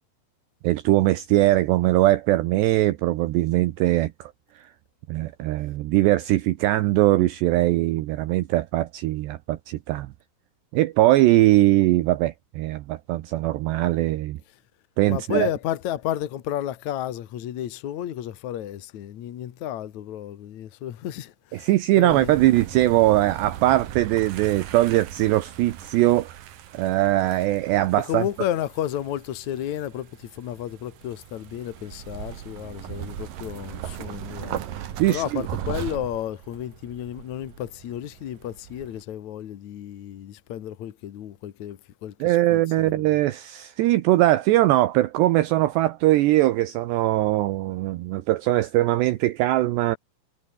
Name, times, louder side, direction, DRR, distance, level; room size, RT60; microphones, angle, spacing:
voice 1, 0.6-4.7 5.1-10.1 10.7-14.4 15.0-15.5 21.5-26.4 26.7-28.2 35.0-35.4 42.2-50.0, right 16 dB, 80° right, 2.7 m, -21 dB
voice 2, 15.1-21.7 22.0-22.4 28.0-43.2, left 11 dB, 75° left, 1.7 m, -32 dB
sound 1, 22.1-39.0, right 11 dB, 60° right, 2.6 m, -38 dB
omnidirectional pair, 5.8 m